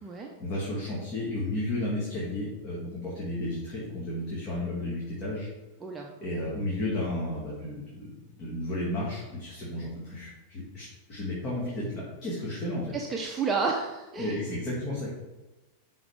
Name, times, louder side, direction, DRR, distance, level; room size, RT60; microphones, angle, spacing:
voice 1, 0.4-5.5 6.2-12.9 14.2-15.2, left 1 dB, 30° left, -6 dB, 2.2 m, -33 dB
voice 2, 12.9-14.4, right 4 dB, 20° right, 0 dB, 0.8 m, -31 dB
12.0 x 4.1 x 3.6 m, 1.1 s
figure-of-eight pair, 90°, 0 cm